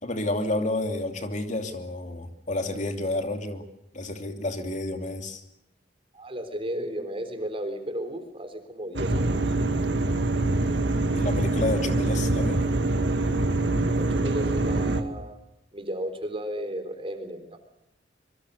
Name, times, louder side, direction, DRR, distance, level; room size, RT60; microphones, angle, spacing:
voice 1, 0.0-3.6 3.9-5.4 11.1-12.6, left 2 dB, 40° left, 5 dB, 2.9 m, -30 dB
voice 2, 6.1-9.4 14.0-15.4 15.7-17.6, equal, 30° right, 8 dB, 3.8 m, -34 dB
sound 1, 8.9-15.0, right 2 dB, 70° right, 2.2 m, -24 dB
25.0 x 24.0 x 6.6 m, 0.83 s
head